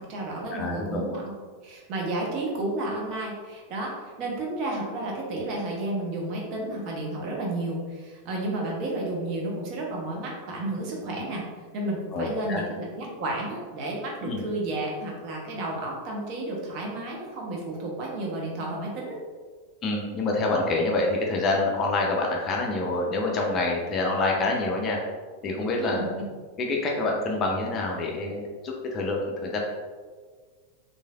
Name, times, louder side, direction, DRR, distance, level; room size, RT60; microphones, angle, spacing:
voice 1, 0.0-1.3 1.6-11.4 11.7-19.2 25.8-26.3, right 2 dB, 40° right, -2 dB, 0.7 m, -32 dB
voice 2, 0.5-1.0 12.1-12.6 14.2-14.4 19.8-25.0 25.4-26.0 26.6-29.6, left 2 dB, 30° left, -1 dB, 0.5 m, -26 dB
3.1 x 2.6 x 2.3 m, 1.5 s
figure-of-eight pair, 90°, 0 cm